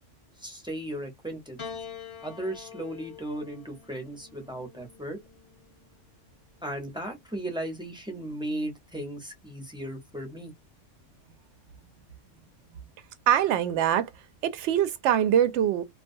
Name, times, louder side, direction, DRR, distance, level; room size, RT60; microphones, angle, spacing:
voice 1, 0.4-1.6 2.2-5.2 6.6-10.5, right 1 dB, 5° right, 0.6 m, -36 dB
Piano, 1.6-6.1 7.1-7.9, left 7 dB, 50° left, 0.3 m, -46 dB
voice 2, 13.3-14.1 14.4-15.8, right 10 dB, 70° right, 0.8 m, -23 dB
2.3 x 2.3 x 2.6 m
omnidirectional pair, 1.3 m